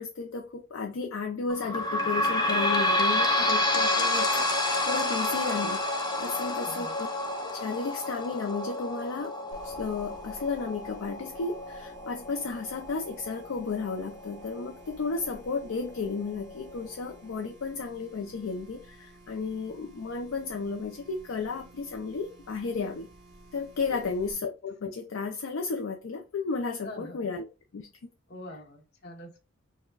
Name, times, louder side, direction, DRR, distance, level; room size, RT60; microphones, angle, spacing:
voice 1, 0.0-7.1 7.4-9.3 9.6-23.1 23.5-27.5 27.7-27.9, left 4 dB, 75° left, 0.4 m, -33 dB
sound 1, 1.5-14.7 15.2-15.3 15.6-15.7 16.5-16.6, left 1 dB, 20° left, 0.5 m, -29 dB
voice 2, 6.5-6.9 23.9-24.0 26.8-27.2 28.3-29.4, left 1 dB, 55° left, 0.8 m, -44 dB
sound 2, 9.5-24.3, right 1 dB, 55° right, 0.8 m, -53 dB
4.5 x 2.1 x 2.2 m
head